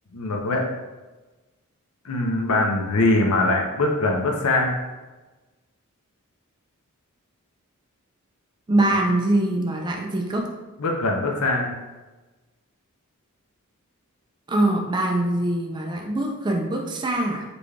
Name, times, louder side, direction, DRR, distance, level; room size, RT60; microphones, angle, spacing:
voice 1, 0.1-0.6 2.0-4.9 10.8-11.7, left 2 dB, 75° left, 2 dB, 0.6 m, -22 dB
voice 2, 8.7-10.5 14.5-17.4, right 1 dB, 20° right, 1 dB, 0.3 m, -23 dB
3.9 x 2.3 x 3.2 m, 1.2 s
head